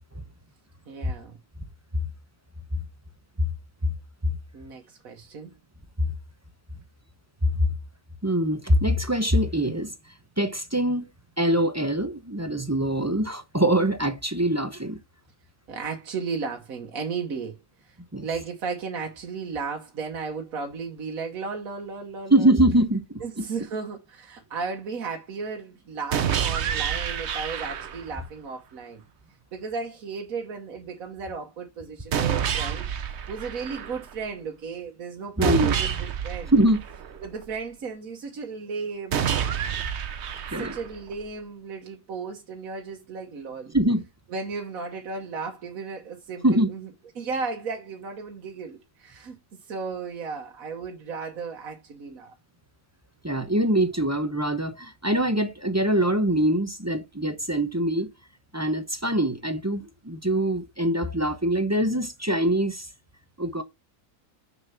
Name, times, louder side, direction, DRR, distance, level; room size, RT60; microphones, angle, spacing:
voice 1, 0.9-1.4 4.5-5.5 15.7-17.6 17.8-18.0 18.2-22.5 23.2-29.0 29.5-36.5 37.2-39.3 40.6-43.7 44.3-46.9 47.1-52.3, right 5 dB, 85° right, 1.6 m, -35 dB
voice 2, 8.2-9.9 10.4-11.0 11.4-15.0 18.1-18.3 22.3-23.4 35.4-35.8 36.5-36.8 40.5-40.7 43.7-44.0 46.4-46.7 53.2-58.1 58.5-62.9 63.4-63.6, right 1 dB, 15° right, 0.7 m, -23 dB
sound 1, 26.1-28.1 32.1-34.1 35.4-37.4 39.1-41.1, right 8 dB, 55° right, 1.0 m, -28 dB
6.5 x 5.9 x 5.7 m
omnidirectional pair, 1.4 m